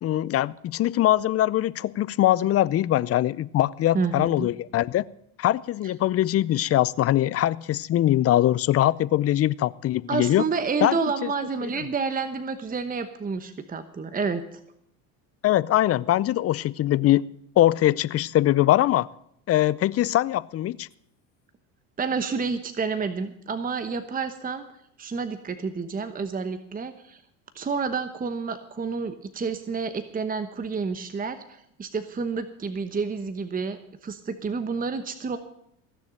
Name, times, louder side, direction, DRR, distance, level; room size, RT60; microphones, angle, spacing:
voice 1, 0.0-5.0 5.4-10.4 10.8-11.0 15.4-17.2 17.6-19.1 19.5-20.9, left 13 dB, 35° left, 20 dB, 0.5 m, -22 dB
voice 2, 3.9-4.5 10.1-14.6 22.0-24.6 25.0-27.2 27.5-35.4, right 5 dB, 20° right, 10 dB, 1.1 m, -29 dB
16.0 x 6.9 x 8.9 m, 0.73 s
supercardioid pair, 85°, 42 cm